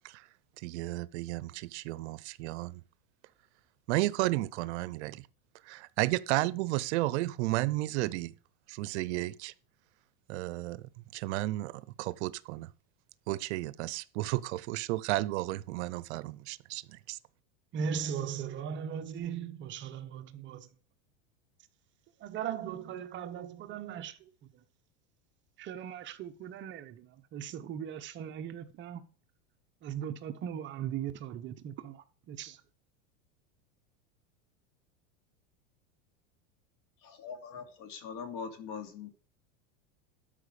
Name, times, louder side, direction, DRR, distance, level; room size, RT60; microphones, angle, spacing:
voice 1, 0.6-2.8 3.9-5.3 5.6-8.3 8.7-9.5 10.3-12.7 13.3-17.2, right 18 dB, 65° right, 0.7 m, -33 dB
voice 2, 17.7-20.7 22.2-24.3 25.6-29.0 29.8-32.6, right 8 dB, 30° right, 0.8 m, -38 dB
voice 3, 37.0-39.1, left 6 dB, 55° left, 2.9 m, -42 dB
12.5 x 5.8 x 4.9 m
supercardioid pair, 150°, 37 cm